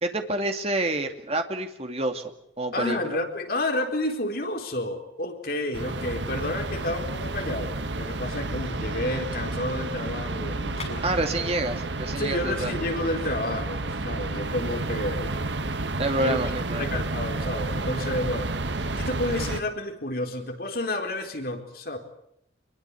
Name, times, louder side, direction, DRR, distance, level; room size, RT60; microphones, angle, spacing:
voice 1, 0.0-2.2 2.6-3.2 11.0-12.7 16.0-16.9, right 2 dB, 35° right, 5 dB, 2.5 m, -28 dB
voice 2, 2.7-11.0 12.2-15.4 16.2-16.4 16.8-18.5 19.0-22.0, left 1 dB, 55° left, 4 dB, 4.3 m, -30 dB
sound 1, 5.7-19.6, right 2 dB, 80° right, 1.5 m, -31 dB
sound 2, 9.7-14.8, left 4 dB, 35° left, 6.3 m, -49 dB
26.5 x 22.0 x 8.4 m, 0.73 s
head